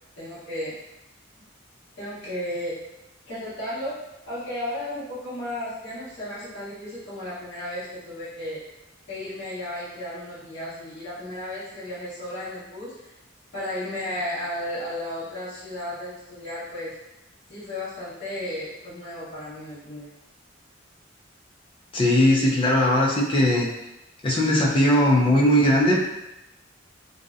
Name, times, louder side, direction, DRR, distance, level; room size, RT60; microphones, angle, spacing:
voice 1, 0.2-0.7 2.0-2.8 3.3-8.6 9.1-13.1 13.5-16.9 17.5-20.1, left 1 dB, 60° left, -13 dB, 1.1 m, -34 dB
voice 2, 21.9-23.7 24.2-26.0, left 1 dB, 25° left, -2 dB, 0.4 m, -19 dB
2.6 x 2.1 x 2.4 m, 0.92 s
head